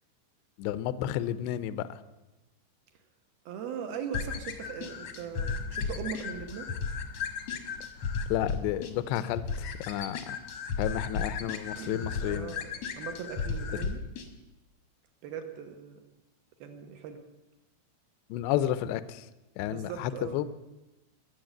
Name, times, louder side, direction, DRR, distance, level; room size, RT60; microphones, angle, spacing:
voice 1, 0.6-1.9 8.3-10.4 10.8-12.6 18.3-19.3 19.6-20.5, left 12 dB, 80° left, 14 dB, 2.5 m, -31 dB
voice 2, 3.5-6.7 11.8-14.0 15.2-16.0 16.6-17.2 19.6-20.4, right 7 dB, 70° right, 6 dB, 2.4 m, -40 dB
sound 1, 4.1-14.3, left 5 dB, 65° left, 1.6 m, -35 dB
22.0 x 8.0 x 7.9 m, 1.0 s
omnidirectional pair, 5.7 m